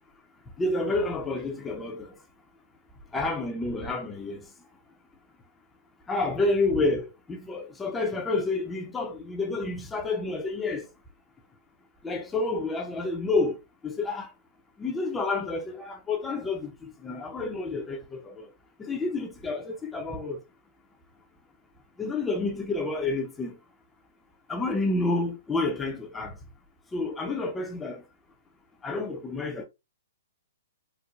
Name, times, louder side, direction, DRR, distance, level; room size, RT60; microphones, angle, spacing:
voice 1, 0.6-2.2 3.1-4.4 6.1-10.9 12.0-13.6 13.8-14.3 14.8-18.5 18.8-20.4 22.0-23.6 24.5-26.4 26.9-28.0 28.8-29.6, left 3 dB, 10° left, 0.7 m, -29 dB
4.4 x 2.1 x 2.5 m
hypercardioid pair, 140°, 0 cm